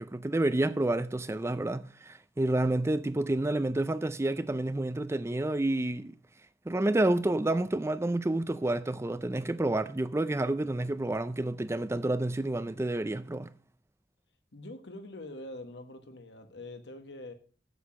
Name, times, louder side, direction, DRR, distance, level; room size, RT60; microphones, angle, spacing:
voice 1, 0.0-6.1 6.7-13.5, right 2 dB, 15° right, 0.4 m, -29 dB
voice 2, 14.5-17.3, left 1 dB, 75° left, 1.4 m, -44 dB
8.1 x 7.8 x 6.2 m
head